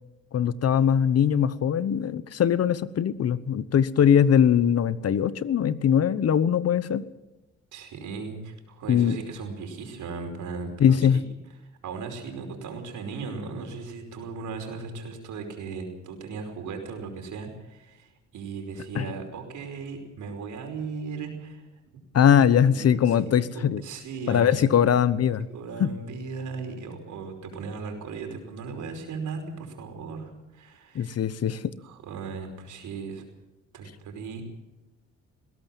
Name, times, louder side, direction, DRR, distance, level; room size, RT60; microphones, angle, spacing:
voice 1, 0.3-7.0 8.9-9.2 10.8-11.2 18.9-19.1 22.1-23.8 24.3-25.5 25.8-25.9 30.9-31.6, left 8 dB, 55° left, 16 dB, 1.0 m, -21 dB
voice 2, 7.7-11.2 11.8-21.7 22.6-24.9 25.5-31.2 31.8-33.2 33.7-34.4, right 4 dB, 75° right, 4 dB, 5.1 m, -37 dB
20.5 x 17.0 x 7.5 m, 1.0 s
cardioid pair, 90°, 30 cm